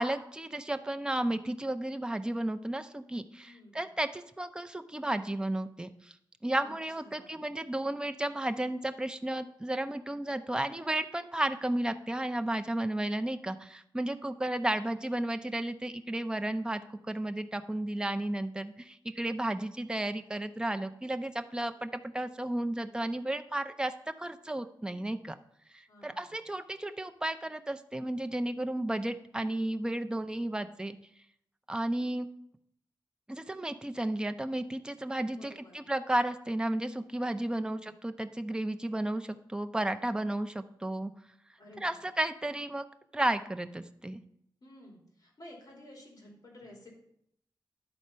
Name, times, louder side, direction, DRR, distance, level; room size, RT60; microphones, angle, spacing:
voice 1, 0.0-5.9 6.4-16.8 17.1-23.9 24.2-25.3 26.0-31.0 31.7-32.3 33.3-41.1 41.8-42.8 43.1-44.2, right 1 dB, 10° right, 8 dB, 0.5 m, -33 dB
voice 2, 3.4-3.8 6.6-6.7 7.0-7.5 14.4-14.8 25.9-26.5 35.3-35.7 37.4-37.9 41.6-42.0 44.6-46.9, left 1 dB, 50° left, -1 dB, 2.8 m, -53 dB
10.5 x 4.2 x 5.5 m, 0.73 s
wide cardioid pair, 130°, 8 cm